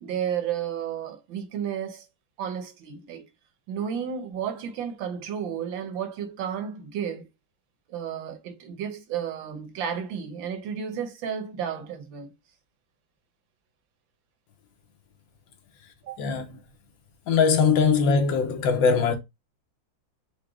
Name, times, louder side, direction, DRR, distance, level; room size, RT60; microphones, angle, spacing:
voice 1, 0.0-2.0 2.4-3.3 3.7-7.3 7.9-12.3 16.0-16.2, right 8 dB, 75° right, 1.6 m, -32 dB
voice 2, 17.3-19.1, left 5 dB, 75° left, 1.6 m, -21 dB
5.0 x 2.2 x 4.6 m
omnidirectional pair, 2.1 m